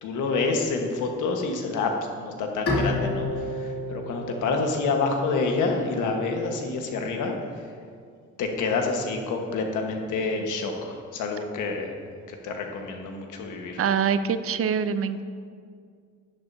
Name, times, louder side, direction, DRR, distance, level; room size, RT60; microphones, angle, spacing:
voice 1, 0.0-7.3 8.4-11.9 12.3-13.8, left 4 dB, 85° left, 2 dB, 1.4 m, -28 dB
Bowed string instrument, 2.7-5.9, left 2 dB, 50° left, 2.5 m, -30 dB
voice 2, 13.8-15.2, right 7 dB, 50° right, 12 dB, 0.5 m, -24 dB
11.0 x 10.5 x 2.7 m, 2.1 s
cardioid pair, 90°, 30 cm